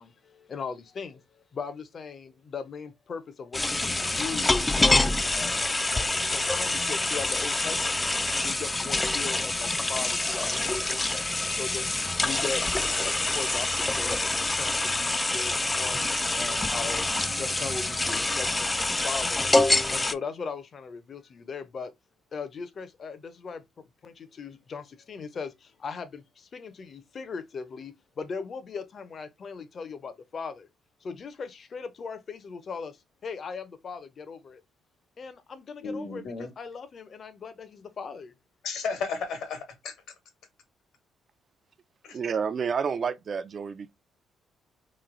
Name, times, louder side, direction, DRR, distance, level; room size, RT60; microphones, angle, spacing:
voice 1, 0.0-8.1 8.4-11.9 12.2-16.0 16.3-19.5 19.9-21.9 22.3-30.7 31.0-34.6 35.2-38.3, left 5 dB, 50° left, 0.7 m, -39 dB
sound 1, 3.5-20.1, left 2 dB, 15° left, 0.4 m, -26 dB
sound 2, 15.3-19.0, right 3 dB, 70° right, 0.9 m, -47 dB
voice 2, 35.8-36.5 38.6-39.9 42.0-42.2, left 4 dB, 80° left, 1.4 m, -33 dB
voice 3, 42.1-43.9, right 6 dB, 50° right, 0.5 m, -29 dB
3.1 x 2.6 x 3.8 m
cardioid pair, 90°, 0 cm